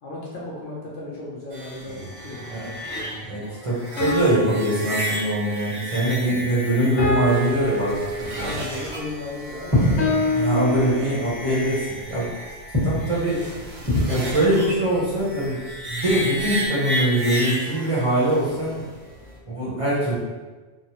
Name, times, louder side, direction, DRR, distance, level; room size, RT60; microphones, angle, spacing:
voice 1, 0.0-2.0 2.2-2.5 8.3-10.1, left 2 dB, 60° left, -5 dB, 0.7 m, -35 dB
sound 1, 1.5-19.4, equal, 70° right, 0.9 m, -33 dB
sound 2, 2.3-2.5 4.0-5.7 7.0-8.7 10.0-11.5, left 2 dB, 85° left, 1.1 m, -27 dB
voice 2, 3.0-8.5 10.3-12.3 12.8-13.4 14.0-15.6 15.9-18.8 19.5-20.2, right 1 dB, 35° right, -9 dB, 0.8 m, -23 dB
sound 3, 7.4-16.7, left 1 dB, 15° left, 1.1 m, -29 dB
3.2 x 2.0 x 2.8 m, 1.3 s
omnidirectional pair, 1.1 m